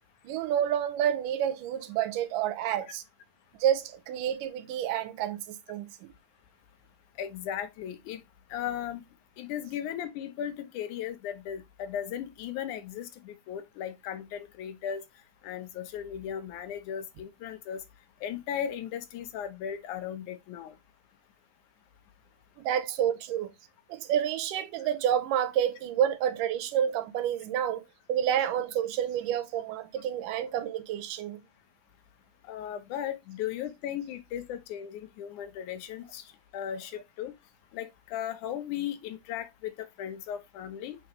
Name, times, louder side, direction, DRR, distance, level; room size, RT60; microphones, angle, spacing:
voice 1, 0.2-3.0 3.6-6.1 22.6-23.5 23.9-31.4, right 10 dB, 85° right, 2.4 m, -29 dB
voice 2, 7.2-8.2 8.5-9.0 9.4-15.0 15.4-17.8 18.2-20.7 32.5-36.3 36.5-37.3 37.7-41.0, left 9 dB, 75° left, 2.2 m, -36 dB
6.9 x 4.9 x 3.1 m
omnidirectional pair, 3.7 m